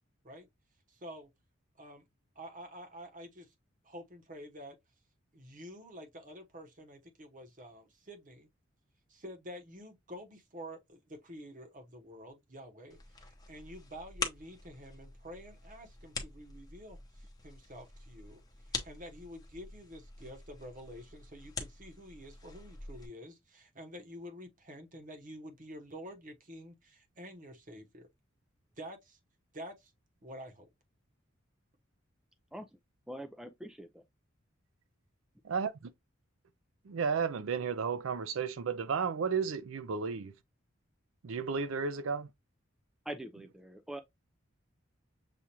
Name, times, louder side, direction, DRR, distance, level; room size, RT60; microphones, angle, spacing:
voice 1, 0.9-1.3 1.8-2.0 2.3-3.5 3.8-4.8 5.3-8.5 9.1-18.4 18.8-28.1 28.8-29.2 29.5-29.9 30.2-30.7, equal, 40° right, 1.0 m, -49 dB
sound 1, 12.9-23.1, left 3 dB, 20° left, 0.8 m, -45 dB
voice 2, 33.1-34.0 43.1-44.0, right 1 dB, ahead, 0.3 m, -43 dB
voice 3, 36.9-40.3 41.2-42.3, right 6 dB, 75° right, 0.4 m, -33 dB
6.8 x 2.4 x 2.9 m
head